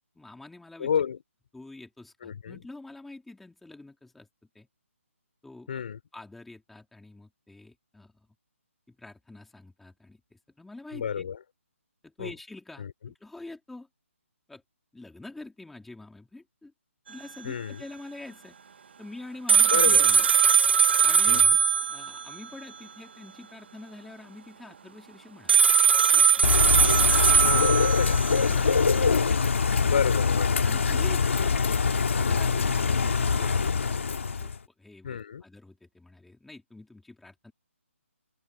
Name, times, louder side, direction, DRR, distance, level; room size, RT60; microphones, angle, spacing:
voice 1, 0.1-0.9 1.5-4.3 4.5-4.7 5.4-5.8 6.1-8.1 8.9-11.3 12.0-13.9 14.5-14.6 14.9-16.7 17.1-18.5 19.0-20.3 21.0-21.5 21.9-25.6 26.1-26.5 28.3-29.2 30.6-34.0 34.4-37.5, left 2 dB, ahead, 3.0 m, -46 dB
voice 2, 0.8-1.2 2.2-2.6 5.7-6.0 10.9-11.4 12.2-12.3 12.8-12.9 17.4-17.8 19.7-20.1 21.3-21.6 27.4-28.2 29.9-30.7 35.0-35.4, left 7 dB, 40° left, 3.8 m, -30 dB
sound 1, 19.5-22.3 25.5-28.5, right 6 dB, 50° right, 0.9 m, -20 dB
Bird / Rain, 26.4-34.6, left 5 dB, 60° left, 2.1 m, -24 dB
hypercardioid pair, 170°, 8 cm